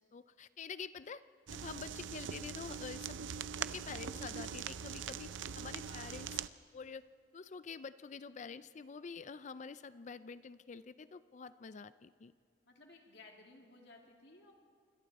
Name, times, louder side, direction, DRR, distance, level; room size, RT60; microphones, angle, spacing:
voice 1, 0.1-1.2 1.5-3.2 3.6-5.3 5.5-6.4 6.7-7.1 7.3-12.3, left 5 dB, 40° left, 14 dB, 0.4 m, -47 dB
sound 1, 1.5-6.5, right 7 dB, 85° right, 0.5 m, -42 dB
voice 2, 5.8-6.2 12.6-14.5, left 2 dB, 60° left, 1 dB, 2.4 m, -58 dB
26.5 x 23.5 x 4.2 m, 2.2 s
head